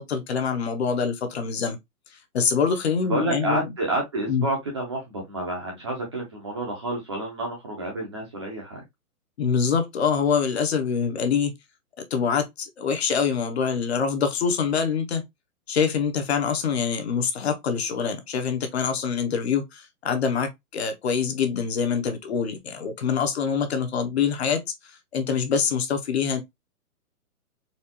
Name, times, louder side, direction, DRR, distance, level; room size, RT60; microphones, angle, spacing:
voice 1, 0.0-1.8 2.1-3.7 4.3-4.4 9.4-11.5 12.0-15.2 15.7-26.4, left 6 dB, 45° left, 0.8 m, -25 dB
voice 2, 3.0-8.8, right 2 dB, 20° right, 0.6 m, -29 dB
4.2 x 2.3 x 2.7 m
hypercardioid pair, 160°, 45 cm